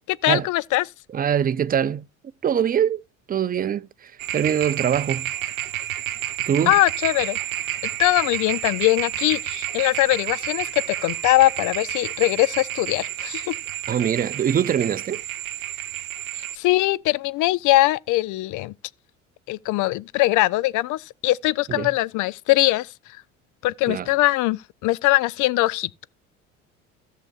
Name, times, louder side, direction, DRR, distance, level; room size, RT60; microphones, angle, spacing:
voice 1, 0.1-0.9 6.7-7.4 8.0-13.5 16.3-18.7 19.5-23.2 23.6-26.1, left 18 dB, 50° left, 0.6 m, -21 dB
voice 2, 1.1-2.0 2.4-3.0 3.3-5.3 6.4-6.7 13.9-15.2 21.7-21.9 23.9-24.1, right 9 dB, 20° right, 0.6 m, -23 dB
sound 1, 4.2-16.6, right 12 dB, 80° right, 0.8 m, -30 dB
16.5 x 6.7 x 2.4 m
figure-of-eight pair, 60°, 40 cm